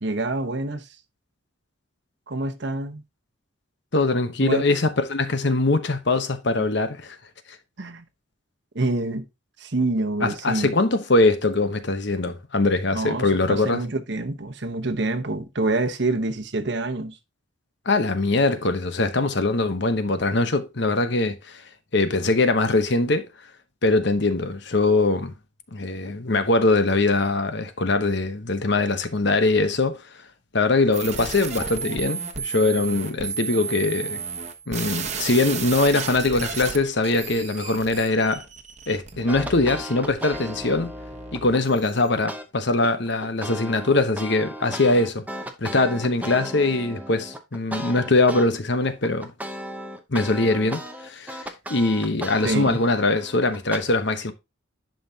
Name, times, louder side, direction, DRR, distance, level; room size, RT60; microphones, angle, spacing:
voice 1, 0.0-0.9 2.3-3.0 4.4-4.6 7.8-8.1 8.7-9.2 9.6-10.7 12.9-17.2 52.4-52.8, right 2 dB, 55° right, 1.0 m, -26 dB
voice 2, 3.9-7.2 10.2-13.8 17.9-21.6 21.9-23.3 23.8-25.3 25.7-30.0 30.5-34.2 34.7-38.4 38.9-40.9 41.3-45.2 45.6-49.3 50.1-54.3, left 2 dB, 55° left, 1.0 m, -22 dB
sound 1, 30.9-42.1, right 6 dB, 35° right, 1.1 m, -33 dB
sound 2, 39.3-41.6 42.3-42.4 42.8-48.5 48.8-53.8, equal, 5° right, 0.8 m, -36 dB
10.5 x 5.6 x 2.8 m
head